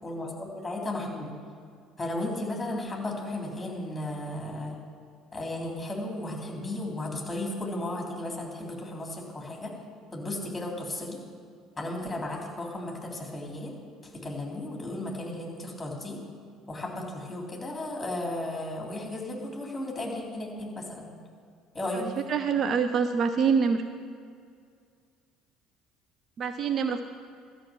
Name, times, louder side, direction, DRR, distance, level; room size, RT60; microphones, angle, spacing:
voice 1, 0.0-1.3 2.0-4.8 5.3-9.7 10.1-11.2 11.8-13.7 14.1-16.2 16.7-21.1 21.7-22.1, left 1 dB, 10° left, -1 dB, 3.3 m, -34 dB
voice 2, 21.9-23.8 26.4-27.0, right 6 dB, 45° right, 8 dB, 0.5 m, -26 dB
12.5 x 5.9 x 7.7 m, 2.3 s
figure-of-eight pair, 55°, 0 cm